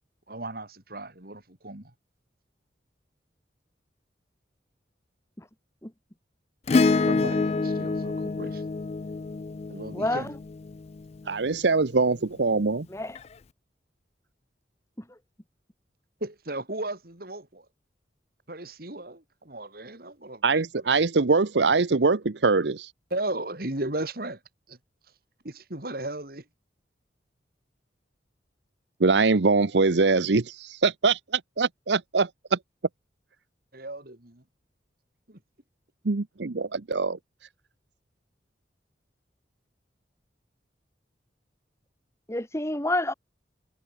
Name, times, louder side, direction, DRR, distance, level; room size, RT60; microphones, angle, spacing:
voice 1, 0.3-1.9 7.0-8.6 9.7-10.3 16.2-17.7 18.5-20.9 23.1-24.4 24.7-24.8 25.4-26.5 33.7-34.4 35.3-35.4, right 2 dB, 55° right, 3.1 m, -36 dB
Acoustic guitar / Strum, 6.7-11.3 13.2-13.3, left 3 dB, 35° left, 0.4 m, -27 dB
voice 2, 11.3-12.9 20.4-22.9 29.0-32.6 36.0-37.2, right 4 dB, 70° right, 0.8 m, -23 dB
voice 3, 42.3-43.1, left 1 dB, 15° left, 2.4 m, -28 dB
head